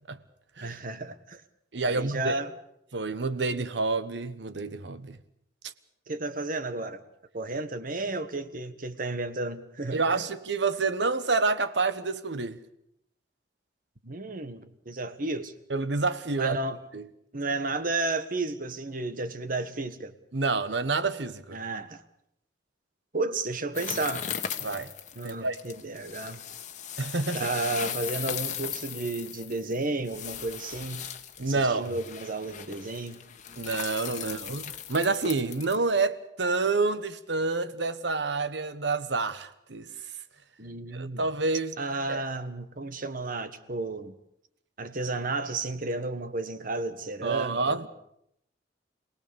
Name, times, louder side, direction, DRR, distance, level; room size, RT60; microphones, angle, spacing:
voice 1, 0.6-1.4 1.8-2.5 6.1-7.0 7.3-10.3 14.0-15.5 16.4-16.8 17.3-20.1 21.5-22.0 23.1-24.3 25.1-26.4 27.3-31.1 31.4-33.2 34.1-34.5 40.6-41.2 41.8-44.1 44.8-47.9, right 2 dB, 50° right, 1.5 m, -32 dB
voice 2, 1.7-2.4 2.9-5.2 5.6-5.7 9.9-12.6 15.7-16.6 16.9-17.1 20.3-21.6 24.6-24.9 25.2-25.6 27.0-27.5 31.4-31.9 33.6-39.9 40.9-41.8 42.1-42.2 47.2-47.9, right 3 dB, 70° right, 1.3 m, -28 dB
sound 1, 23.7-35.8, left 9 dB, 45° left, 1.4 m, -38 dB
27.0 x 18.5 x 7.0 m
head